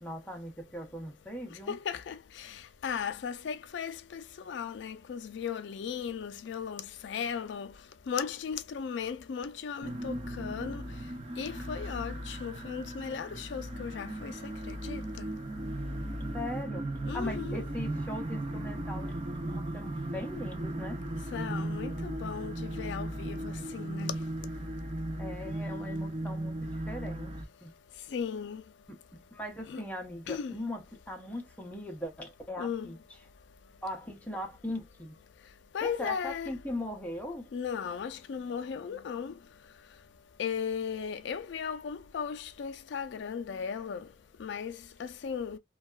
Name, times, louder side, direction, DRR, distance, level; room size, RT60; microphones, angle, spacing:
voice 1, 0.0-1.8 16.3-21.0 25.2-27.7 28.9-33.0 33.8-35.2 35.8-37.5, left 1 dB, 10° left, 0.6 m, -40 dB
voice 2, 1.7-7.7 8.1-10.8 11.4-14.3 14.7-15.3 17.1-17.7 21.3-24.1 28.1-28.6 29.7-29.8 30.3-30.6 32.6-32.9 35.7-36.5 37.5-39.3 40.4-44.1 44.4-45.6, left 7 dB, 80° left, 0.4 m, -36 dB
sound 1, 9.8-27.4, right 1 dB, 30° right, 0.5 m, -37 dB
2.7 x 2.3 x 2.2 m
head